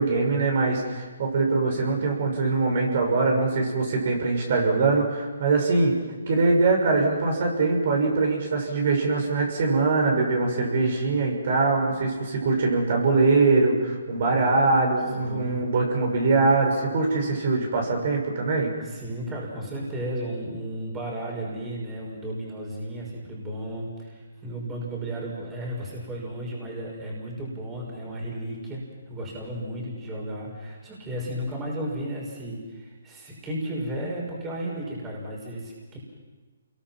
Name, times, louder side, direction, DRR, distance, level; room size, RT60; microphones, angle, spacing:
voice 1, 0.0-5.9 6.3-18.7, right 3 dB, 50° right, 1 dB, 6.3 m, -22 dB
voice 2, 15.2-15.6 18.8-36.0, right 1 dB, 15° right, -2 dB, 6.0 m, -34 dB
29.5 x 22.5 x 5.9 m, 1.4 s
hypercardioid pair, 160°, 0 cm